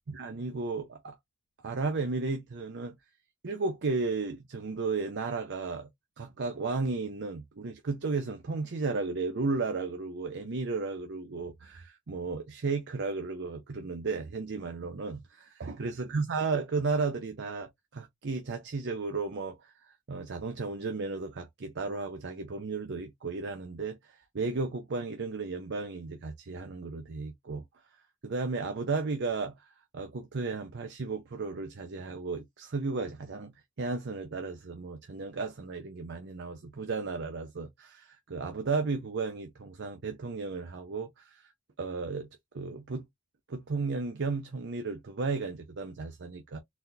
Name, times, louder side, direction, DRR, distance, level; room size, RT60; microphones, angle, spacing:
voice 1, 0.1-1.2 1.6-3.0 3.4-5.9 6.2-19.7 20.1-27.6 28.2-29.6 29.9-33.5 33.8-41.5 41.8-43.1 43.5-46.6, right 4 dB, 50° right, 0.6 m, -34 dB
4.1 x 2.1 x 2.6 m
head